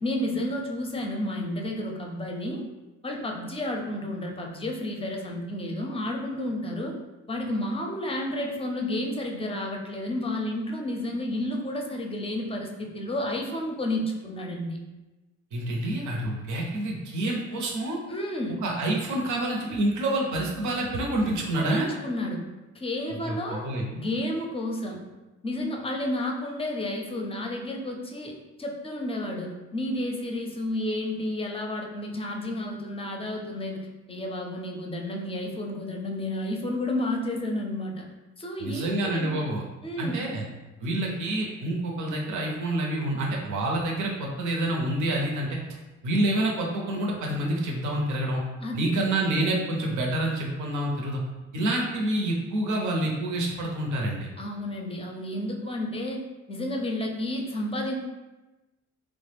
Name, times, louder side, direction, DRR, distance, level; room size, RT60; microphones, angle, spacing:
voice 1, 0.0-2.6 3.0-6.9 7.3-14.8 18.1-18.6 21.6-22.4 22.7-25.0 25.4-38.1 38.4-39.5 39.8-40.3 48.6-48.9 54.4-56.2 56.5-57.9, left 1 dB, 20° left, 1 dB, 0.5 m, -31 dB
voice 2, 15.5-18.0 18.6-21.9 23.2-23.9 38.6-39.6 40.0-40.4 40.8-45.6 46.0-48.4 48.7-51.2 51.5-54.3, right 1 dB, 75° right, -1 dB, 0.7 m, -27 dB
3.4 x 2.1 x 3.3 m, 1.1 s
cardioid pair, 90°, 30 cm